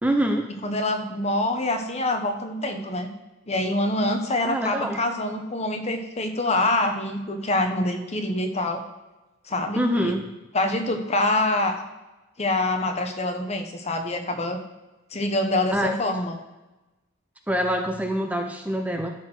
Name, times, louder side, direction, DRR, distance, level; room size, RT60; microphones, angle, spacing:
voice 1, 0.0-0.5 4.4-5.0 9.8-10.2 15.7-16.0 17.5-19.1, equal, 5° right, 4 dB, 0.6 m, -25 dB
voice 2, 0.6-3.1 3.5-8.8 9.5-10.1 10.5-11.8 12.4-14.6 15.1-16.4, left 2 dB, 35° left, 6 dB, 1.0 m, -25 dB
12.5 x 4.3 x 6.2 m, 1.1 s
head